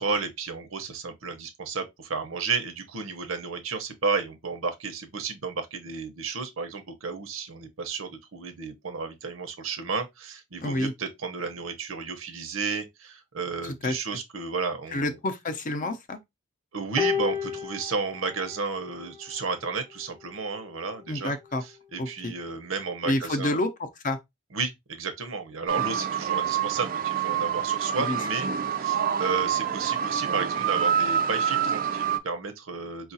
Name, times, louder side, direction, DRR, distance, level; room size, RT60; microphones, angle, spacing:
voice 1, 0.0-15.2 16.7-21.3 21.6-23.6 24.5-28.5 28.8-33.1, right 4 dB, 90° right, 0.8 m, -32 dB
voice 2, 10.6-10.9 13.6-13.9 14.9-16.2 21.1-21.6 22.0-22.3 23.0-24.2 28.0-28.2, left 1 dB, 40° left, 0.6 m, -29 dB
sound 1, 17.0-19.5 20.5-20.6, left 7 dB, 15° left, 1.0 m, -32 dB
sound 2, 25.7-32.2, right 8 dB, 45° right, 0.4 m, -27 dB
4.6 x 2.4 x 2.7 m
head